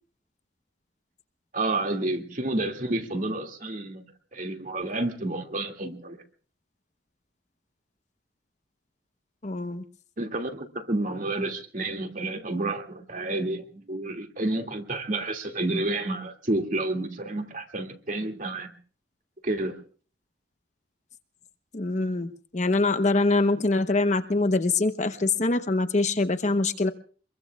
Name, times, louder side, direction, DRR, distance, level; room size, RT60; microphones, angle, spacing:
voice 1, 1.5-6.2 10.2-18.7 19.4-19.8, right 2 dB, 45° right, 3 dB, 2.3 m, -30 dB
voice 2, 9.4-9.8 21.7-26.9, left 3 dB, 40° left, 9 dB, 0.9 m, -24 dB
25.5 x 22.0 x 2.4 m, 0.41 s
head